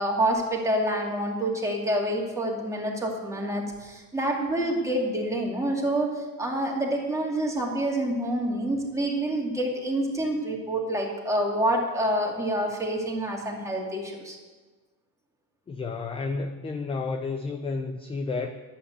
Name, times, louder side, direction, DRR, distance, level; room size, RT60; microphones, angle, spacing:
voice 1, 0.0-14.4, right 1 dB, 5° right, -2 dB, 2.5 m, -27 dB
voice 2, 15.7-18.6, left 4 dB, 15° left, 6 dB, 0.4 m, -31 dB
11.5 x 8.6 x 8.1 m, 1.3 s
cardioid pair, 140°, 46 cm